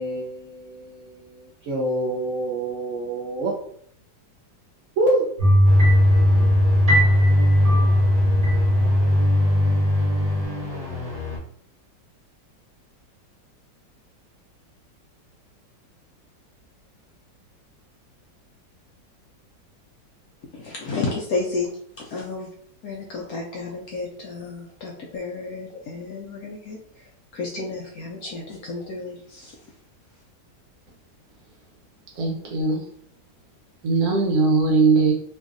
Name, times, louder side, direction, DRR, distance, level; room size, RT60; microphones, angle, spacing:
voice 1, 0.0-3.5 5.0-5.3 6.2-6.6, right 1 dB, 85° right, 0.6 m, -27 dB
sound 1, 5.4-10.4, equal, 25° right, 0.9 m, -17 dB
sound 2, 5.6-11.4, left 3 dB, ahead, 1.0 m, -32 dB
voice 2, 20.5-21.7 22.0-22.5 22.8-26.8 27.3-29.6, left 3 dB, 70° left, 0.9 m, -31 dB
voice 3, 32.2-32.8 33.8-35.1, right 4 dB, 60° right, 1.2 m, -20 dB
3.0 x 2.6 x 2.4 m
omnidirectional pair, 1.9 m